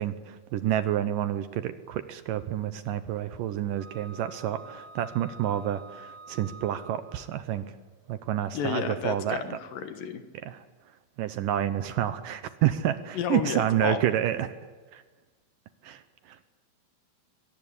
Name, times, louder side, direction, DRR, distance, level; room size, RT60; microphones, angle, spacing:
voice 1, 0.0-7.7 8.1-9.4 10.4-10.6 11.2-14.5 14.9-15.0 15.8-16.0 16.3-16.4, right 11 dB, 75° right, 11 dB, 2.3 m, -29 dB
Wind instrument woodwind instrument, 3.8-7.4, right 4 dB, 55° right, 3.2 m, -48 dB
voice 2, 8.5-10.2 13.1-14.2, left 7 dB, 70° left, 8 dB, 2.9 m, -32 dB
23.5 x 18.0 x 9.9 m, 1.3 s
omnidirectional pair, 4.4 m